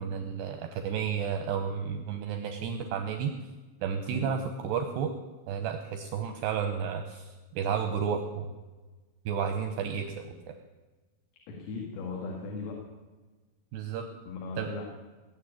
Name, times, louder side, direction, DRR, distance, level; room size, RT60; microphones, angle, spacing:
voice 1, 0.0-3.3 3.8-5.1 5.5-8.5 9.3-10.1 10.5-10.6 13.7-14.1 14.6-14.7, right 7 dB, 80° right, 6 dB, 2.4 m, -32 dB
voice 2, 11.5-12.9 14.3-14.8, left 3 dB, 80° left, -1 dB, 4.8 m, -37 dB
20.0 x 7.4 x 9.8 m, 1.2 s
omnidirectional pair, 5.9 m